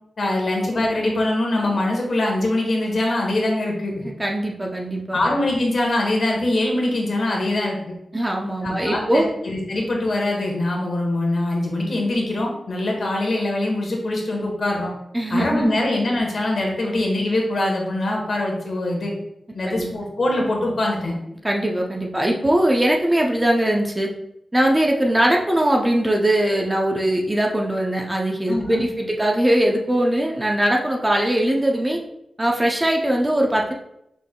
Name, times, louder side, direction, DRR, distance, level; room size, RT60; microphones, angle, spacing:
voice 1, 0.2-4.0 5.1-7.9 8.6-14.9 15.3-19.1 19.5-21.1 28.5-28.9, left 1 dB, 55° left, 0 dB, 1.1 m, -23 dB
voice 2, 4.0-5.2 8.1-9.3 15.1-15.7 19.6-19.9 21.4-24.1 24.5-32.0 32.4-33.7, right 1 dB, 15° right, 0 dB, 0.5 m, -21 dB
6.1 x 3.3 x 2.2 m, 0.79 s
wide cardioid pair, 135°, 0 cm